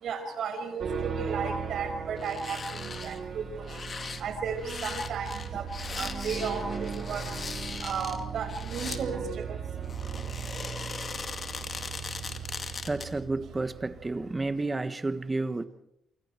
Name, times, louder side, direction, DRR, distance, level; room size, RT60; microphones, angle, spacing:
voice 1, 0.0-3.7 4.2-5.6 5.9-7.2 7.8-9.2 9.5-9.6, right 6 dB, 65° right, 5.4 m, -34 dB
sound 1, 0.8-14.5, right 6 dB, 50° right, 4.0 m, -38 dB
sound 2, 2.2-3.2 3.6-9.0 9.8-13.2 13.6-13.7, left 5 dB, 40° left, 2.3 m, -39 dB
sound 3, 6.0-8.4, right 3 dB, 35° right, 5.4 m, -51 dB
voice 2, 12.8-15.6, right 2 dB, 20° right, 1.3 m, -31 dB
28.0 x 25.5 x 4.5 m
cardioid pair, 90°, 0 cm